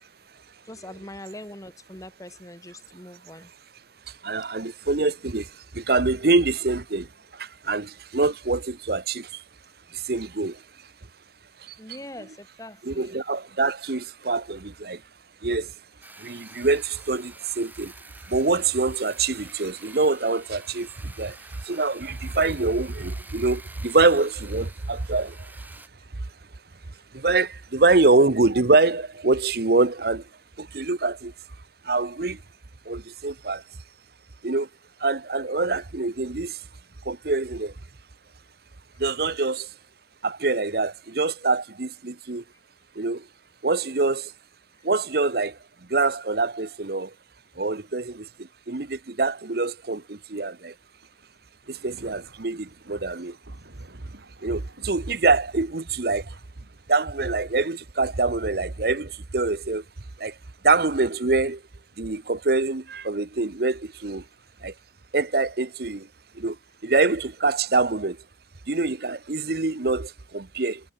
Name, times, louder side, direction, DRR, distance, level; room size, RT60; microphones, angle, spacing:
voice 1, 0.6-3.5 11.8-13.2 27.8-28.1, left 1 dB, 20° left, 5.9 m, -42 dB
voice 2, 4.2-5.5 5.7-7.1 7.4-9.3 10.1-10.5 12.8-15.0 15.4-15.7 16.2-17.9 18.3-20.9 21.2-21.3 21.7-25.3 27.1-30.2 30.6-31.3 31.9-32.4 32.9-33.6 34.4-34.7 35.0-36.5 37.1-37.7 39.0-39.7 40.2-42.4 43.0-43.2 43.6-44.3 44.8-45.5 45.9-47.1 47.6-48.2 48.7-50.7 51.8-53.3 54.4-56.2 56.9-59.8 60.2-60.3 60.6-61.6 62.0-64.2 64.6-64.7 65.1-66.0 66.4-66.5 66.8-68.2 68.7-70.8, right 3 dB, 55° right, 1.0 m, -24 dB
sound 1, 16.0-25.9, right 2 dB, 10° right, 3.0 m, -48 dB
Thunder, 50.9-60.8 61.6-61.7 62.7-62.8 63.6-63.7, right 1 dB, 85° right, 5.1 m, -55 dB
head